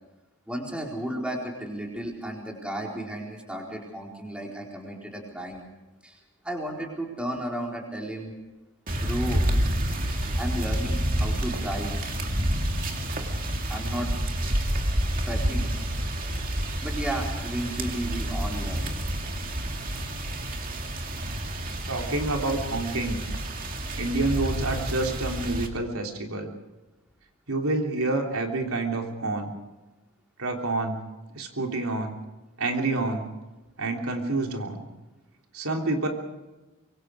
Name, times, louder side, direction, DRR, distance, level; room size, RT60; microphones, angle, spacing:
voice 1, 0.5-5.6 6.0-8.3 8.9-9.4 10.4-11.9 13.7-14.1 15.3-15.7 16.8-18.9, right 1 dB, 5° right, -1 dB, 4.3 m, -33 dB
sound 1, 8.9-25.7, right 1 dB, 40° right, 2.5 m, -29 dB
voice 2, 21.9-23.2 23.9-26.5 27.5-29.5 30.4-31.0 31.3-32.1 32.6-33.3 33.8-34.8 35.5-36.1, right 2 dB, 75° right, 2 dB, 3.4 m, -28 dB
25.5 x 23.5 x 5.0 m, 1.1 s
head